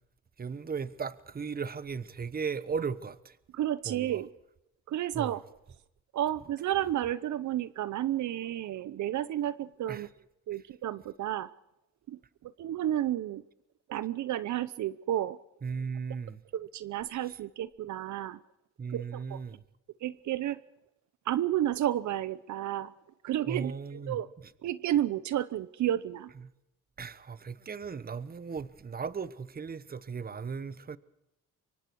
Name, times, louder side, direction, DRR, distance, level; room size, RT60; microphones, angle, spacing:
voice 1, 0.4-3.4 3.8-4.2 5.1-5.4 9.9-10.1 15.6-16.4 18.8-19.6 23.5-24.2 26.4-26.5 27.0-31.0, right 5 dB, 30° right, 1.1 m, -36 dB
voice 2, 3.5-4.3 4.9-5.4 6.1-10.1 10.5-11.5 12.1-13.4 13.9-15.4 16.5-18.4 18.9-19.4 20.0-20.6 21.3-22.9 23.2-24.3 24.6-26.3, right 12 dB, 70° right, 0.8 m, -31 dB
25.0 x 23.0 x 4.6 m
cardioid pair, 90°, 30 cm